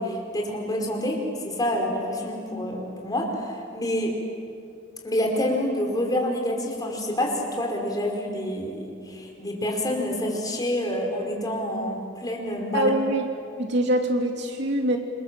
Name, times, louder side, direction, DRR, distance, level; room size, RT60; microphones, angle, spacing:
voice 1, 0.0-4.1 5.0-12.9, left 1 dB, 20° left, 0 dB, 4.9 m, -27 dB
voice 2, 12.7-13.3 13.6-15.0, right 1 dB, 65° right, 3 dB, 2.8 m, -24 dB
28.0 x 26.0 x 7.6 m, 2.4 s
head